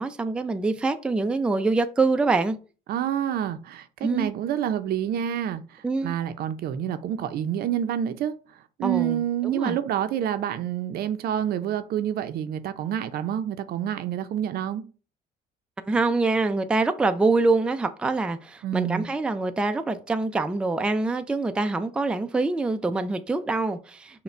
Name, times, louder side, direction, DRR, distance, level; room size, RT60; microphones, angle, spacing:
voice 1, 0.0-2.6 4.0-4.3 5.8-6.1 8.8-9.8 15.8-24.2, right 3 dB, 5° right, 0.3 m, -25 dB
voice 2, 2.9-8.4 8.8-14.8 18.6-19.0, right 10 dB, 65° right, 0.5 m, -28 dB
5.6 x 2.2 x 4.3 m
cardioid pair, 110°, 17 cm